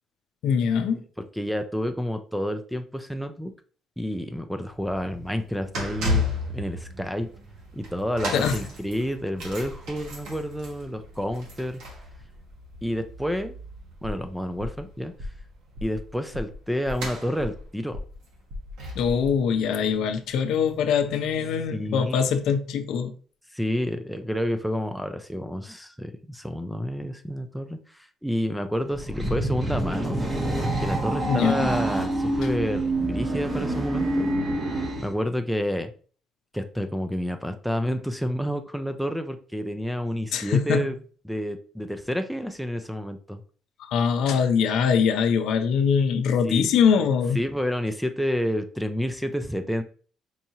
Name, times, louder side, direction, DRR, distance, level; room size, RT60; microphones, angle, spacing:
voice 1, 0.4-1.0 8.3-8.6 19.0-23.1 31.2-31.7 40.3-40.9 43.8-47.4, left 7 dB, 70° left, 0.5 m, -23 dB
voice 2, 1.4-3.5 4.0-6.2 6.5-7.3 7.7-11.8 12.8-13.5 14.0-15.3 15.8-18.0 21.7-22.1 23.5-30.2 30.6-34.3 35.0-35.9 36.5-41.0 41.3-43.4 46.4-46.7 47.4-49.8, equal, ahead, 0.3 m, -29 dB
sound 1, 4.7-21.0 21.3-21.5 22.3-22.4, left 2 dB, 85° right, 1.4 m, -36 dB
sound 2, 14.6-14.9 15.2-15.5 15.8-16.0 16.3-16.6 16.9-17.7 17.9-18.2 18.5-18.8 19.0-19.3, left 2 dB, 60° right, 1.0 m, -36 dB
sound 3, 28.9-35.1, right 1 dB, 20° right, 0.9 m, -27 dB
4.7 x 2.8 x 2.7 m
cardioid pair, 155°, 0 cm